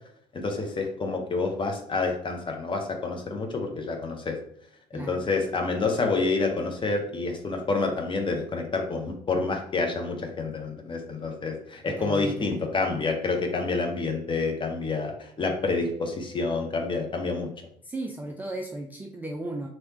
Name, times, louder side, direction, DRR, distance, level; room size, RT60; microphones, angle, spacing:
voice 1, 0.3-4.4 4.9-17.5, left 3 dB, 25° left, 3 dB, 0.7 m, -28 dB
voice 2, 4.9-5.2 11.9-12.5 17.8-19.7, right 1 dB, 10° right, 1 dB, 0.3 m, -35 dB
3.2 x 2.8 x 2.9 m, 0.69 s
figure-of-eight pair, 55°, 21 cm